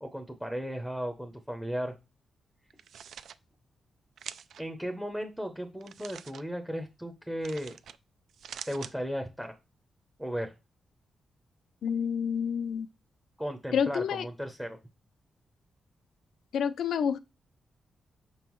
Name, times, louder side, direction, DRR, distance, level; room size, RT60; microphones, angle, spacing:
voice 1, 0.0-1.9 4.6-7.8 8.7-9.5 10.2-10.5 13.4-14.8, equal, 5° right, 0.6 m, -35 dB
sound 1, 2.7-3.4 4.2-4.6 5.8-6.4 7.4-8.0 8.3-8.9, right 8 dB, 75° right, 0.3 m, -44 dB
voice 2, 11.8-12.9 13.7-14.2 16.5-17.2, left 7 dB, 80° left, 0.4 m, -28 dB
6.6 x 5.4 x 3.0 m
wide cardioid pair, 145°, 0 cm